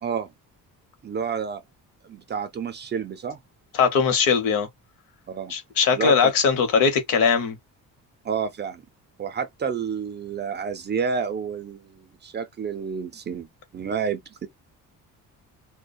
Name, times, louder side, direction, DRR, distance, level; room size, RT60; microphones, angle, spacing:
voice 1, 1.0-1.6 2.0-3.4 5.3-5.5 5.9-6.3 8.2-8.8 9.2-13.5 13.7-14.5, right 6 dB, 30° right, 0.5 m, -29 dB
voice 2, 3.7-4.7 5.5-7.6, left 6 dB, 75° left, 0.9 m, -20 dB
2.3 x 2.1 x 2.5 m
cardioid pair, 145°, 34 cm